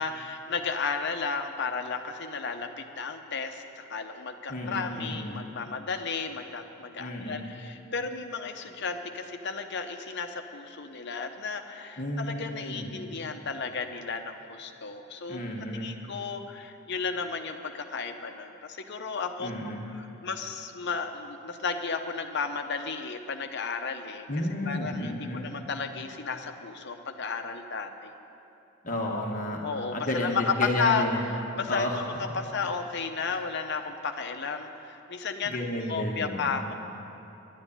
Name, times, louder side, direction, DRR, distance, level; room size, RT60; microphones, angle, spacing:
voice 1, 0.0-15.4 15.7-19.5 19.9-24.3 24.7-28.1 29.6-36.7, left 5 dB, 50° left, 6 dB, 0.9 m, -33 dB
voice 2, 4.5-5.3 7.0-7.4 12.0-13.0 15.3-16.0 19.4-19.8 24.3-25.5 28.8-29.6 29.9-31.4 31.7-32.0 33.3-33.4 35.4-36.6, left 1 dB, 35° left, -1 dB, 1.2 m, -32 dB
11.5 x 9.6 x 9.9 m, 2.8 s
head